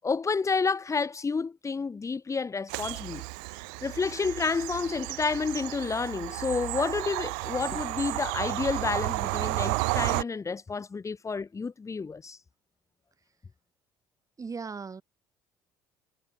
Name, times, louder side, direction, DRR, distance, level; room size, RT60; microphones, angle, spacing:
voice 1, 0.0-3.2 3.8-12.4, left 4 dB, 30° left, 5.2 m, -30 dB
Bird vocalization bird call bird song / Train, 2.7-10.2, right 37 dB, 75° right, 3.8 m, -32 dB
voice 2, 14.4-15.0, right 5 dB, 30° right, 7.2 m, -37 dB
hypercardioid pair, 60°, 11 cm